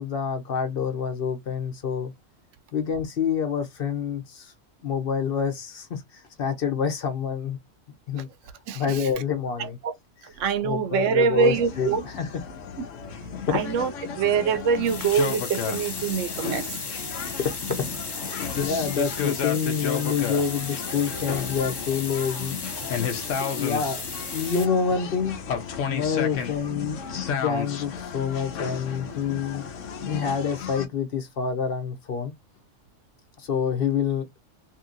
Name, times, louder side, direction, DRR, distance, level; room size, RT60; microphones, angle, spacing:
voice 1, 0.0-2.1 2.7-4.5 4.8-7.6 8.1-8.3 8.7-9.8 10.6-12.2 13.5-13.6 17.4-17.5 18.1-22.6 23.4-24.0 24.3-25.4 25.9-27.0 27.4-29.6 30.0-32.3 33.4-34.4, left 6 dB, 55° left, 0.8 m, -27 dB
voice 2, 8.7-9.1 9.6-9.9 10.2-12.1 13.5-16.9 22.8-23.0, right 6 dB, 90° right, 1.0 m, -25 dB
sound 1, 11.4-30.9, left 7 dB, 90° left, 1.1 m, -33 dB
sound 2, 14.8-24.7, left 4 dB, 40° left, 0.4 m, -35 dB
2.9 x 2.7 x 2.5 m
omnidirectional pair, 1.3 m